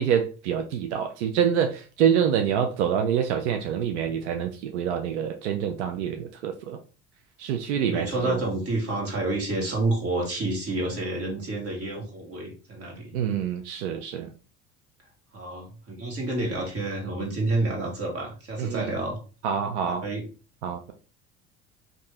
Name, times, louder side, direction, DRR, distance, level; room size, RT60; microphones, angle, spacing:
voice 1, 0.0-6.8 7.4-8.4 13.1-14.3 18.6-18.9 19.4-20.0 20.6-20.9, right 8 dB, 90° right, 5 dB, 0.5 m, -26 dB
voice 2, 7.7-13.1 15.3-19.2 19.9-20.2, right 2 dB, 45° right, 0 dB, 1.7 m, -29 dB
2.7 x 2.6 x 3.3 m, 0.35 s
hypercardioid pair, 75°, 34 cm